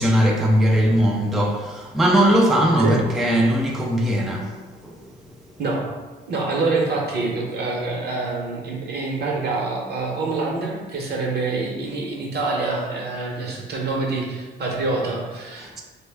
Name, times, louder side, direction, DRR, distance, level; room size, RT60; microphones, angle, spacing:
voice 1, 0.0-5.1 15.6-15.8, equal, ahead, 0.3 m, -20 dB
voice 2, 6.3-15.8, right 3 dB, 55° right, 0.8 m, -26 dB
3.3 x 2.1 x 3.3 m
cardioid pair, 90°, 20 cm